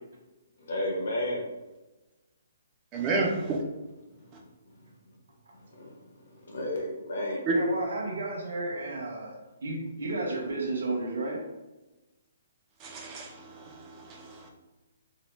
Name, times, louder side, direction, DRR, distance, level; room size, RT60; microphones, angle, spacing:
voice 1, 0.6-1.4 5.7-6.0 6.5-7.5, left 1 dB, 60° left, 0 dB, 0.7 m, -32 dB
voice 2, 2.9-3.6 7.5-7.6 12.8-13.8 14.1-14.5, right 3 dB, 15° right, 1 dB, 0.3 m, -31 dB
voice 3, 7.5-9.3 9.6-11.4, right 2 dB, 75° right, -1 dB, 0.7 m, -32 dB
2.8 x 2.0 x 2.9 m, 1.1 s
hypercardioid pair, 180°, 0 cm